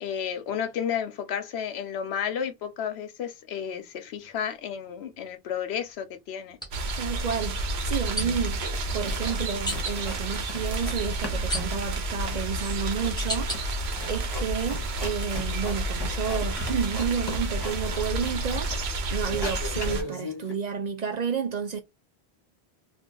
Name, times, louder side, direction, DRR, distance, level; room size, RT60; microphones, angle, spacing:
voice 1, 0.0-6.6, left 8 dB, 90° left, 0.9 m, -32 dB
sound 1, 3.7-3.9 6.5-6.7 8.2-8.6 9.7-10.0 11.5-12.1 12.7-13.6 14.2-14.8 15.3-17.3, equal, 5° left, 1.2 m, -36 dB
sound 2, 6.7-20.0, right 2 dB, 80° right, 1.0 m, -30 dB
voice 2, 7.0-13.7 14.1-21.8, right 7 dB, 55° right, 0.5 m, -31 dB
sound 3, 8.7-9.4 9.7-11.0 11.2-18.9 19.2-20.5, left 2 dB, 25° left, 1.0 m, -39 dB
2.6 x 2.3 x 3.7 m
omnidirectional pair, 1.1 m